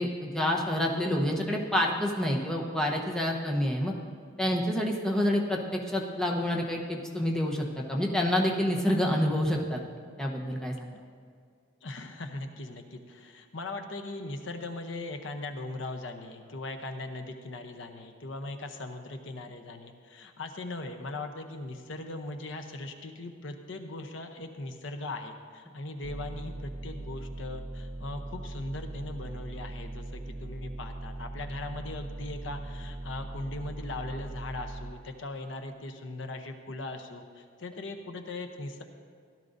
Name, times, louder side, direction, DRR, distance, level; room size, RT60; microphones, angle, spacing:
voice 1, 0.0-3.9 4.4-9.8 10.2-10.7, left 1 dB, 5° left, -1 dB, 0.9 m, -28 dB
voice 2, 11.8-38.8, left 2 dB, 70° left, 6 dB, 0.8 m, -39 dB
sound 1, 26.0-34.9, right 2 dB, 25° right, 0.4 m, -40 dB
16.0 x 12.0 x 2.7 m, 2.2 s
head